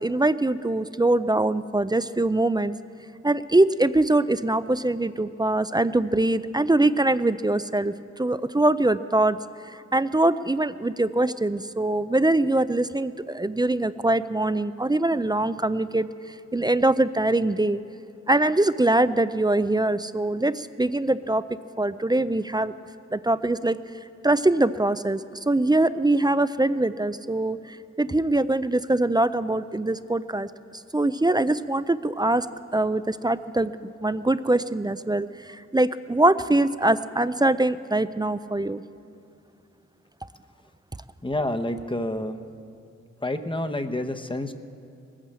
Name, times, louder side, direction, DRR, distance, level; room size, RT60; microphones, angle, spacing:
voice 1, 0.0-2.7 3.2-9.4 9.9-16.1 16.5-17.8 18.3-21.5 21.8-22.7 23.1-23.8 24.2-30.5 30.9-32.5 32.7-38.8, right 2 dB, 15° right, 14 dB, 0.4 m, -23 dB
voice 2, 41.2-42.4 43.2-44.5, left 1 dB, 15° left, 7 dB, 0.9 m, -28 dB
20.0 x 8.9 x 7.6 m, 2.6 s
cardioid pair, 65°, 29 cm